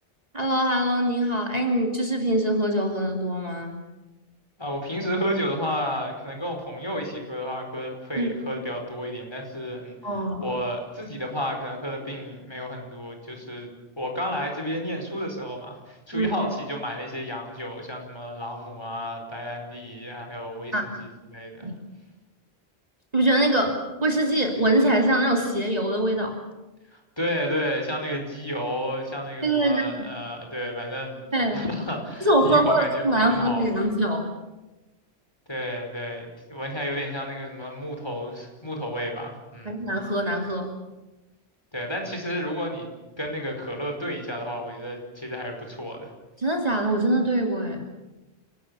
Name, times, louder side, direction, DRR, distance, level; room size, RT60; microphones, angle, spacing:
voice 1, 0.3-3.8 8.2-8.3 10.0-10.5 16.1-16.3 20.7-20.9 21.6-21.7 23.1-26.4 29.4-29.9 31.3-31.7 32.2-34.3 39.6-40.7 46.4-47.8, right 1 dB, 35° right, 2 dB, 3.0 m, -23 dB
voice 2, 4.6-13.7 14.0-21.7 26.9-31.2 31.5-33.8 35.5-39.8 41.7-42.9 43.2-46.1, equal, 25° left, 2 dB, 5.0 m, -32 dB
29.5 x 19.0 x 7.1 m, 1.1 s
omnidirectional pair, 1.2 m